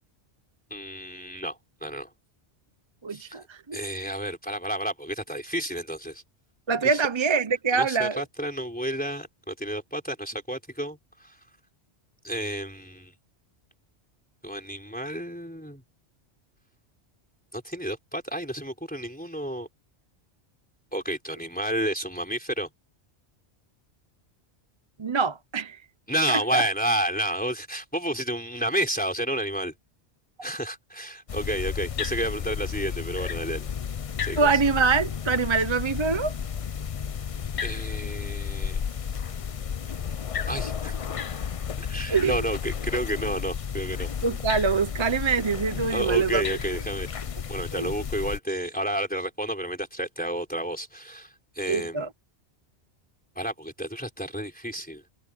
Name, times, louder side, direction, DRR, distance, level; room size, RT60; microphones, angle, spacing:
voice 1, 0.7-2.1 3.1-3.4 3.7-6.2 6.9-7.0 7.7-11.0 11.2-11.3 12.2-13.1 14.4-15.8 17.5-19.7 20.9-22.7 26.1-29.7 30.4-33.6 34.2-34.5 37.6-38.8 40.5-41.0 41.8-44.1 45.9-47.1 47.5-52.1 53.4-55.0, right 1 dB, 5° left, 3.9 m, -31 dB
voice 2, 3.0-3.8 6.7-8.2 25.0-25.8 26.3-26.6 34.4-36.3 42.1-42.4 44.2-46.4 47.8-47.9 51.7-52.1, right 5 dB, 30° right, 0.7 m, -24 dB
sound 1, 31.3-48.4, left 7 dB, 45° left, 0.5 m, -32 dB
omnidirectional pair, 1.2 m